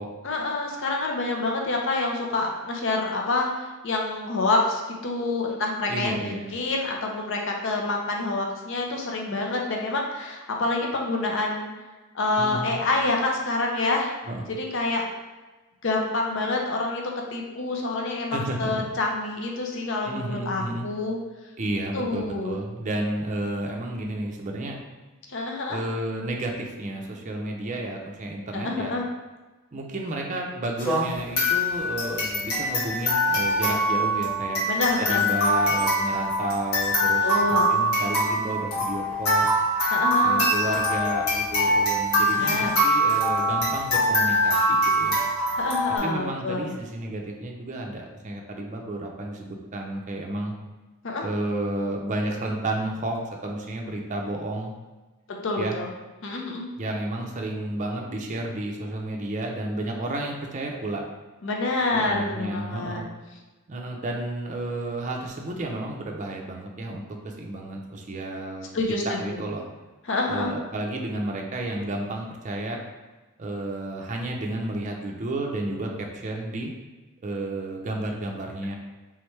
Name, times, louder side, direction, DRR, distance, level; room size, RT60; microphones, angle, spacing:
voice 1, 0.2-11.7 12.1-14.1 14.6-15.0 15.8-21.2 21.9-22.6 25.3-25.8 28.5-29.0 34.7-35.3 37.2-37.7 39.9-40.5 42.3-42.8 45.5-46.8 51.0-51.2 55.3-55.9 56.2-56.7 61.4-63.0 68.7-69.2 70.1-70.5, left 2 dB, 55° left, 0 dB, 0.6 m, -27 dB
voice 2, 5.9-6.5 12.4-12.8 14.2-14.4 18.3-18.9 20.0-20.9 21.6-24.8 25.7-28.9 29.7-34.6 35.0-39.5 40.2-45.2 46.0-50.5 51.2-54.7 55.6-55.8 56.8-61.0 61.9-63.1 63.7-68.8 69.2-69.6 70.3-72.8 73.4-76.7 77.2-78.7, right 1 dB, 35° right, 0 dB, 0.5 m, -31 dB
sound 1, 30.8-46.0, equal, 75° left, 1.5 m, -23 dB
3.4 x 3.2 x 3.1 m, 1.2 s
head